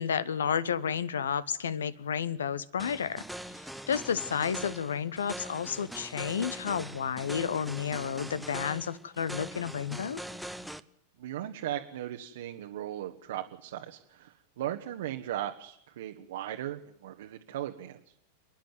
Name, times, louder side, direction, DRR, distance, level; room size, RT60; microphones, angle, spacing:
voice 1, 0.0-3.2 3.9-10.2, left 7 dB, 65° left, 0.8 m, -31 dB
sound 1, 2.8-10.8, equal, ahead, 0.8 m, -42 dB
voice 2, 11.2-18.0, right 12 dB, 55° right, 1.2 m, -37 dB
29.0 x 10.5 x 9.4 m
figure-of-eight pair, 90°, 0 cm